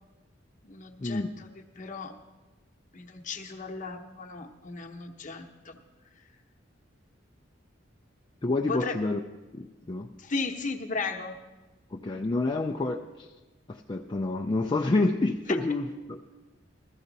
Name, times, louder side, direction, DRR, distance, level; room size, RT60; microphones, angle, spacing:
voice 1, 0.6-1.5 1.8-2.1 2.9-5.8 8.7-9.0 10.2-11.4 15.5-15.6, left 4 dB, 45° left, 4 dB, 0.9 m, -35 dB
voice 2, 8.4-9.2 9.5-10.1 11.9-13.3 13.7-16.2, left 2 dB, 25° left, 1 dB, 0.4 m, -28 dB
15.5 x 13.5 x 4.0 m, 1.2 s
head